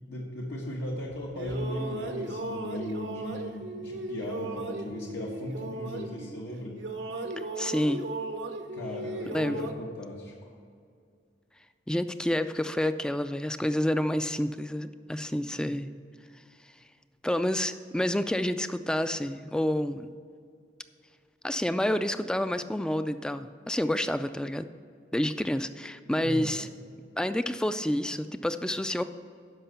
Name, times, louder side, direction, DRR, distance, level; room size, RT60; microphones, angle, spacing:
voice 1, 0.1-6.8 8.7-10.5 15.6-15.7 26.2-26.5, left 1 dB, 80° left, -3 dB, 1.3 m, -37 dB
sound 1, 1.1-6.5 6.8-9.7, right 2 dB, 80° right, 0.8 m, -36 dB
voice 2, 7.6-8.0 9.3-9.7 11.9-15.9 17.2-20.1 21.4-24.7 25.1-26.7 27.2-29.0, left 1 dB, 5° left, 11 dB, 0.3 m, -29 dB
11.5 x 5.3 x 6.8 m, 2.2 s
head